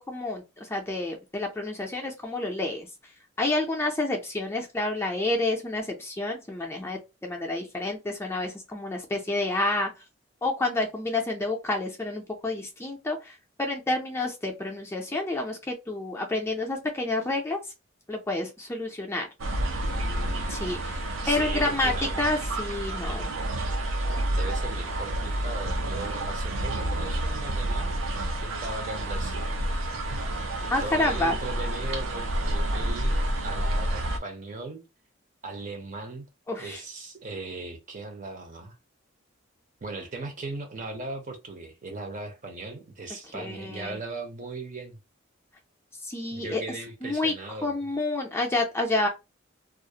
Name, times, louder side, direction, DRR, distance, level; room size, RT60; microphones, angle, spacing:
voice 1, 0.0-2.9 3.4-9.9 10.4-17.6 18.1-19.3 20.5-23.3 30.7-31.4 36.5-36.8 43.3-44.0 46.1-46.6 47.0-47.3 47.6-49.1, left 2 dB, 15° left, 0.4 m, -29 dB
sound 1, 19.4-34.2, right 1 dB, 85° right, 0.5 m, -29 dB
voice 2, 20.0-22.2 24.3-28.0 28.4-29.5 30.7-34.8 35.4-36.3 36.6-38.8 39.8-45.0 46.3-47.7, right 3 dB, 40° right, 0.6 m, -38 dB
2.4 x 2.0 x 2.7 m
head